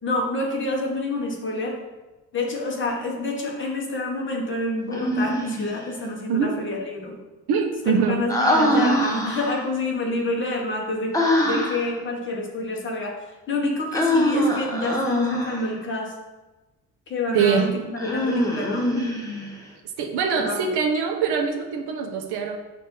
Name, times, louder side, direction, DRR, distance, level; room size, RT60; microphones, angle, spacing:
voice 1, 0.0-1.8 2.3-7.2 7.8-11.2 11.4-16.1 17.1-18.9 20.4-20.6, left 2 dB, 30° left, -1 dB, 1.1 m, -28 dB
Human voice, 4.9-5.8 8.3-9.6 11.1-11.9 13.9-15.7 18.0-19.6, equal, 10° left, 0.8 m, -23 dB
voice 2, 7.5-8.2 17.3-17.7 20.0-22.6, right 6 dB, 85° right, 3 dB, 0.8 m, -23 dB
6.7 x 2.7 x 5.4 m, 1.1 s
cardioid pair, 145°, 39 cm